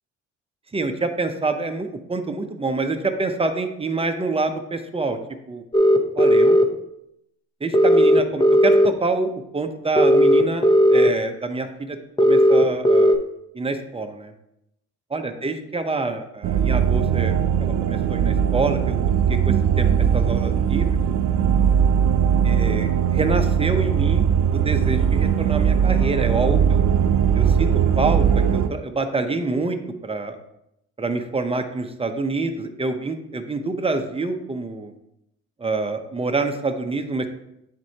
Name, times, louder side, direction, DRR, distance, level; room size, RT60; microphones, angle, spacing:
voice 1, 0.7-5.2 5.5-5.6 6.1-6.6 7.6-13.2 13.5-14.3 15.1-17.4 17.6-19.0 19.3-20.9 22.4-26.8 27.3-27.7 27.9-29.8 30.0-30.4 31.0-34.9 35.6-37.3, right 3 dB, 20° right, 6 dB, 0.7 m, -26 dB
sound 1, 5.7-6.6 7.7-8.9 10.0-11.1 12.2-13.2, equal, 15° left, 0.7 m, -15 dB
sound 2, 16.4-28.7, right 8 dB, 65° right, 0.5 m, -19 dB
9.3 x 4.4 x 2.8 m, 0.81 s
cardioid pair, 90°, 30 cm